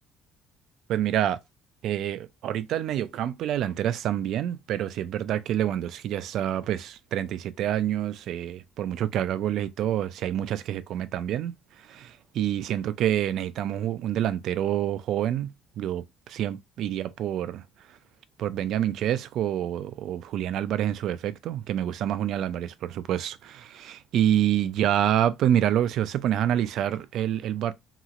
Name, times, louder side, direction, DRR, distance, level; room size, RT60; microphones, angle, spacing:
voice 1, 0.9-1.4 1.8-17.6 18.4-27.7, right 11 dB, 60° right, 0.3 m, -27 dB
2.9 x 2.9 x 2.4 m
cardioid pair, 155°, 0 cm